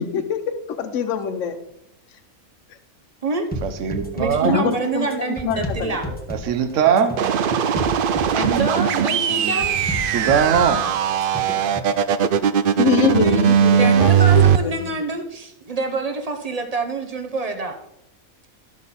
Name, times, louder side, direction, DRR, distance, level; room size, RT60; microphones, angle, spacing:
voice 1, 0.0-1.6 4.4-6.2 9.1-9.2 12.8-15.0, left 7 dB, 65° left, 1.1 m, -25 dB
sound 1, 3.5-12.0, equal, 5° left, 1.1 m, -33 dB
voice 2, 3.6-4.6 6.3-7.2 8.4-8.5 9.4-9.5 10.1-10.9, right 7 dB, 65° right, 1.1 m, -20 dB
voice 3, 4.1-6.1 8.3-9.7 12.9-13.4 13.8-17.8, right 3 dB, 30° right, 0.9 m, -26 dB
sound 2, 7.2-14.6, right 8 dB, 80° right, 0.4 m, -19 dB
13.0 x 6.2 x 4.2 m
omnidirectional pair, 1.5 m